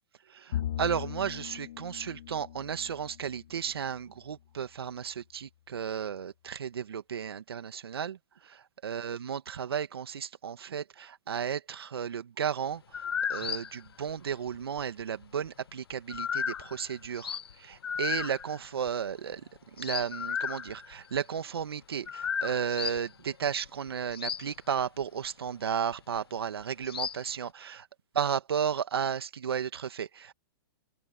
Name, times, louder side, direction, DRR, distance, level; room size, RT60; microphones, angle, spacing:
voice 1, 0.3-8.2 8.8-12.8 13.3-19.4 19.8-27.9 28.1-30.3, right 8 dB, 80° right, 2.2 m, -34 dB
Bowed string instrument, 0.5-4.0, left 11 dB, 65° left, 2.4 m, -39 dB
sound 1, 12.9-14.8 15.2-17.5 17.8-21.2 21.6-21.7 22.1-23.1 23.4-24.5 24.8-25.2 25.9-26.2 26.8-27.3, left 8 dB, 80° left, 1.4 m, -34 dB
open air
hypercardioid pair, 125°, 13 cm